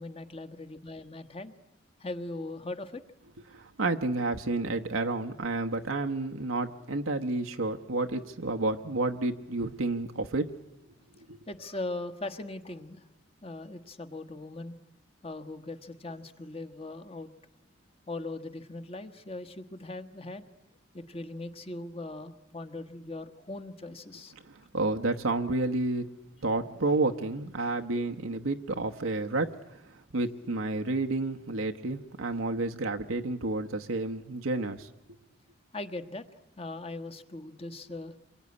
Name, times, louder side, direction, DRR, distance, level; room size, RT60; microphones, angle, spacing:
voice 1, 0.0-1.5 2.0-3.0 11.5-13.0 13.4-14.7 15.2-17.3 18.1-20.4 20.9-24.3 35.7-36.2 36.6-38.1, left 2 dB, 30° left, 10 dB, 1.2 m, -39 dB
voice 2, 3.5-10.5 11.3-11.4 24.7-26.1 26.4-29.5 30.1-34.9, right 2 dB, 80° right, 4 dB, 1.0 m, -30 dB
27.5 x 22.5 x 9.7 m, 1.0 s
head